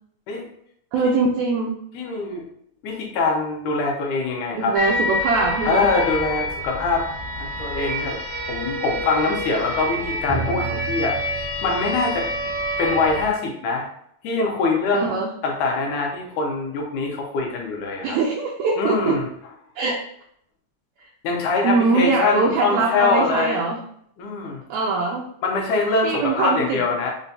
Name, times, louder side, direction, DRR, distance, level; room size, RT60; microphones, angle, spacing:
voice 1, 0.9-1.8 4.5-5.9 14.9-15.3 18.0-19.2 19.8-20.0 21.6-23.8 24.7-25.2 26.0-26.9, right 4 dB, 80° right, -1 dB, 1.6 m, -22 dB
voice 2, 1.9-2.5 2.8-4.8 5.7-7.1 7.4-8.2 8.5-12.3 12.8-13.9 14.2-15.2 15.4-18.2 18.8-19.2 21.2-23.6 24.2-24.6 25.4-27.1, left 3 dB, 75° left, 0 dB, 2.1 m, -23 dB
sound 1, 4.7-13.3, equal, 40° left, 0.7 m, -27 dB
6.2 x 2.2 x 2.6 m, 0.69 s
omnidirectional pair, 3.6 m